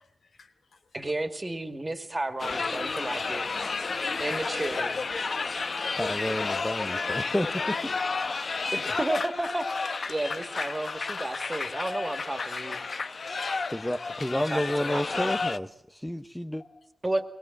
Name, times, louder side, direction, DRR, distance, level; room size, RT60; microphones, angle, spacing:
voice 1, 0.0-1.2 3.9-4.1 5.2-5.5 5.8-5.9 8.8-8.9 13.0-14.4 16.6-16.9, left 4 dB, 75° left, 7 dB, 2.7 m, -57 dB
voice 2, 0.9-3.5 4.1-5.0 8.7-12.8 14.3-15.4 17.0-17.2, right 2 dB, 20° right, 7 dB, 2.4 m, -32 dB
sound 1, 2.4-15.6, left 4 dB, 55° left, 1.0 m, -31 dB
voice 3, 6.0-7.9 13.7-16.6, left 1 dB, 5° left, 7 dB, 0.9 m, -30 dB
23.5 x 21.0 x 7.5 m, 0.75 s
wide cardioid pair, 130°, 0 cm